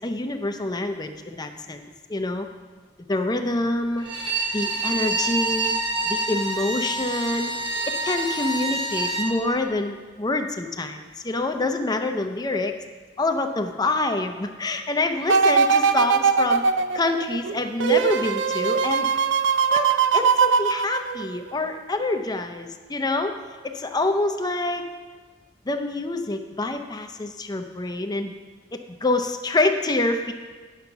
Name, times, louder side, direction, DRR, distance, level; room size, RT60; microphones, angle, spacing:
voice 1, 0.0-2.5 3.1-4.1 4.5-5.7 6.0-7.5 7.9-12.7 13.2-16.6 16.9-19.1 19.7-19.9 20.1-23.4 23.6-24.9 25.6-28.3 28.7-30.3, left 2 dB, 20° left, 6 dB, 0.6 m, -26 dB
Bowed string instrument, 4.0-9.3, right 2 dB, 30° right, 1.2 m, -27 dB
sound 1, 15.3-21.5 22.0-22.1, right 6 dB, 75° right, 0.4 m, -21 dB
9.6 x 5.7 x 5.9 m, 1.4 s
head